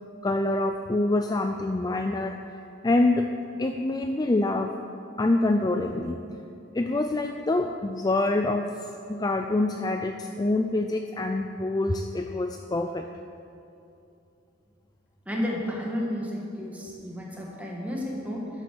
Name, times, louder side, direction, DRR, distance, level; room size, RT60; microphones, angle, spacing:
voice 1, 0.2-2.4 2.8-3.3 3.6-4.7 5.2-6.2 6.7-8.7 9.1-13.1, left 2 dB, 20° left, 5 dB, 0.4 m, -25 dB
voice 2, 15.3-18.5, left 1 dB, 5° right, -2 dB, 2.0 m, -32 dB
12.0 x 8.0 x 6.9 m, 2.7 s
head